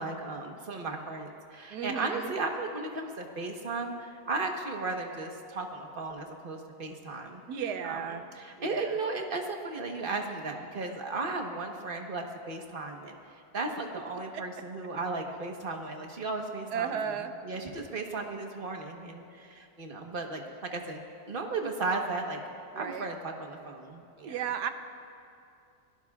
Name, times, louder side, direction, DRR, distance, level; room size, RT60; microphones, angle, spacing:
voice 1, 0.0-7.4 7.8-13.1 13.5-17.0 17.4-21.0 21.3-22.4 22.7-24.4, right 3 dB, 35° right, 2 dB, 1.3 m, -35 dB
voice 2, 1.7-2.3 7.5-8.2 8.6-9.0 10.0-10.2 16.7-17.3 22.7-23.1 24.2-24.7, right 7 dB, 75° right, 8 dB, 1.4 m, -34 dB
28.0 x 17.5 x 2.4 m, 2.5 s
omnidirectional pair, 1.8 m